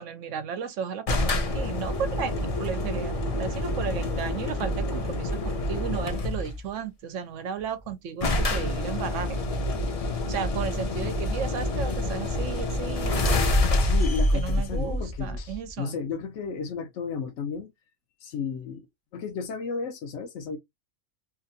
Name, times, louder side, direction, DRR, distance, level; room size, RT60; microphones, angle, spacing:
voice 1, 0.0-9.4 10.3-13.5 14.3-16.0, right 7 dB, 80° right, 0.9 m, -34 dB
sound 1, 1.1-6.6 7.6-7.7 7.9-8.0 8.2-15.7, left 1 dB, 40° left, 0.5 m, -27 dB
voice 2, 13.7-17.7 18.2-18.9 19.1-20.6, left 5 dB, 70° left, 0.9 m, -33 dB
2.8 x 2.5 x 2.5 m
omnidirectional pair, 1.3 m